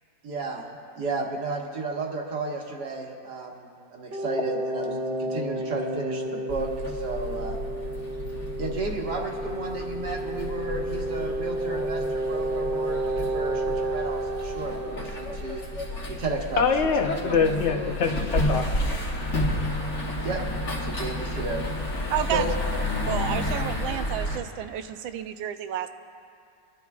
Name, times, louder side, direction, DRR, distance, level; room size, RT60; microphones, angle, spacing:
voice 1, 0.2-0.7 1.0-7.6 8.6-15.6 16.1-16.9 20.2-20.4 20.8-21.7 22.3-22.5, right 3 dB, 60° right, 0 dB, 1.9 m, -33 dB
sound 1, 4.1-15.7, right 1 dB, 45° right, 1.1 m, -31 dB
sound 2, 6.5-24.4, left 1 dB, 40° left, 1.5 m, -31 dB
voice 2, 16.6-18.6, left 5 dB, 60° left, 4 dB, 0.7 m, -24 dB
voice 3, 22.1-22.4 23.1-25.9, right 11 dB, 90° right, 9 dB, 1.4 m, -30 dB
25.5 x 12.0 x 2.3 m, 2.4 s
omnidirectional pair, 2.1 m